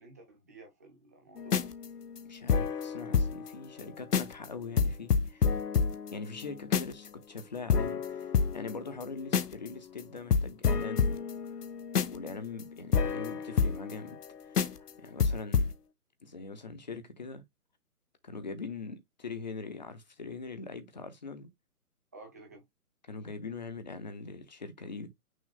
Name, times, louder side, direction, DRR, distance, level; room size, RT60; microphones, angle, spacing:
voice 1, 0.0-1.7 22.1-22.6, right 2 dB, 10° right, 0.6 m, -52 dB
sound 1, 1.4-3.5 3.8-3.9 4.1-4.5 4.8-7.1 7.4-7.5 7.7-9.7 10.0-10.1 10.3-14.3 14.5-14.9 15.2-15.7, left 6 dB, 85° left, 1.0 m, -29 dB
voice 2, 2.2-5.4 6.1-11.6 12.1-15.7 16.2-17.4 18.2-21.5 23.1-25.1, left 4 dB, 30° left, 0.6 m, -42 dB
6.2 x 2.2 x 4.0 m
hypercardioid pair, 160°, 46 cm